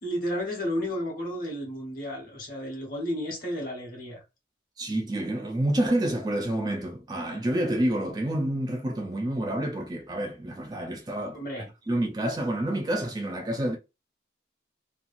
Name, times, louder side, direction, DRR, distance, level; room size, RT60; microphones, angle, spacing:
voice 1, 0.0-4.2 11.3-11.7, equal, 45° left, 1.1 m, -32 dB
voice 2, 4.8-13.8, right 1 dB, 20° right, 0.3 m, -28 dB
3.0 x 2.3 x 2.4 m
head